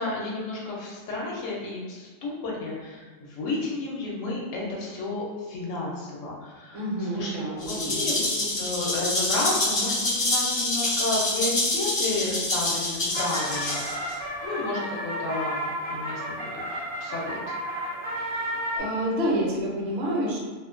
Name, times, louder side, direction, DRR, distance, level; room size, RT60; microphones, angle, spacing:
voice 1, 0.0-6.8 7.1-16.6 17.0-17.4, left 2 dB, 75° left, -3 dB, 0.9 m, -32 dB
voice 2, 6.7-8.1 18.2-18.4 18.7-20.4, right 1 dB, 60° right, -3 dB, 0.9 m, -28 dB
Rattle (instrument), 7.6-14.1, left 2 dB, 40° left, 0.6 m, -26 dB
sound 1, 12.6-18.8, equal, 35° right, 0.5 m, -32 dB
2.4 x 2.1 x 2.4 m, 1.4 s
omnidirectional pair, 1.4 m